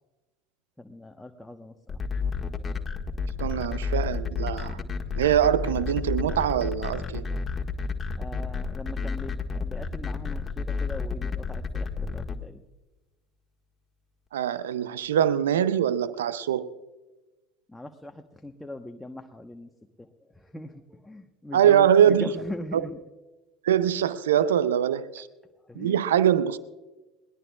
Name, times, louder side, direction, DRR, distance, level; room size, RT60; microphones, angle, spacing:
voice 1, 0.8-2.0 3.3-3.4 8.2-12.6 17.7-19.7 20.0-23.0 25.1-25.2 25.6-26.0, left 1 dB, 10° left, 1.1 m, -41 dB
sound 1, 1.9-12.3, left 5 dB, 25° left, 1.7 m, -30 dB
voice 2, 3.4-4.8 5.1-7.3 14.3-16.7 21.5-22.3 22.7-22.8 23.6-25.3 25.8-26.6, right 9 dB, 80° right, 0.5 m, -23 dB
21.5 x 18.0 x 2.4 m
hypercardioid pair, 75°, 0 cm